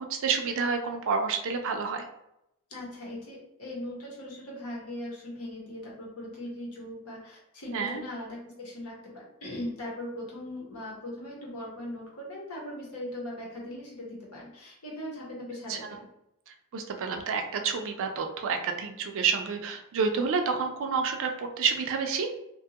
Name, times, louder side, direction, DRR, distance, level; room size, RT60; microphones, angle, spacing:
voice 1, 0.0-2.1 7.7-8.0 15.7-15.8 16.7-22.3, right 5 dB, 60° right, 5 dB, 0.4 m, -29 dB
voice 2, 2.7-16.0, left 1 dB, 75° left, -3 dB, 1.0 m, -39 dB
2.6 x 2.3 x 2.7 m, 0.84 s
head